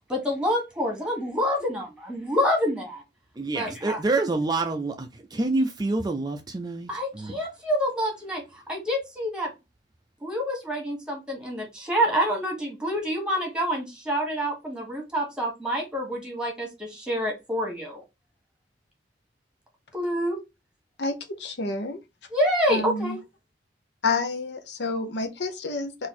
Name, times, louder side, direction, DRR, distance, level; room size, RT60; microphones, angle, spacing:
voice 1, 0.1-3.0 3.5-4.0 6.9-9.5 10.2-18.0 19.9-20.4 22.3-23.2, equal, 5° right, 1.5 m, -27 dB
voice 2, 3.3-7.3, right 2 dB, 20° right, 0.4 m, -27 dB
voice 3, 21.0-22.0 22.7-23.2 24.0-26.1, left 3 dB, 70° left, 0.8 m, -29 dB
4.0 x 2.6 x 4.1 m
head